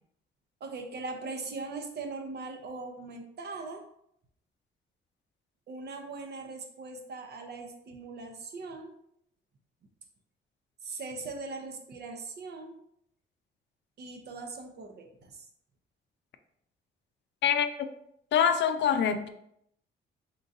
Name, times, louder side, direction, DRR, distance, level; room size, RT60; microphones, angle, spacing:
voice 1, 0.6-3.8 5.7-8.9 10.8-12.8 14.0-15.5, right 3 dB, 55° right, 4 dB, 0.8 m, -40 dB
voice 2, 17.4-17.9 18.3-19.3, left 8 dB, 65° left, 8 dB, 0.5 m, -25 dB
3.8 x 3.8 x 2.6 m, 0.73 s
cardioid pair, 90°, 20 cm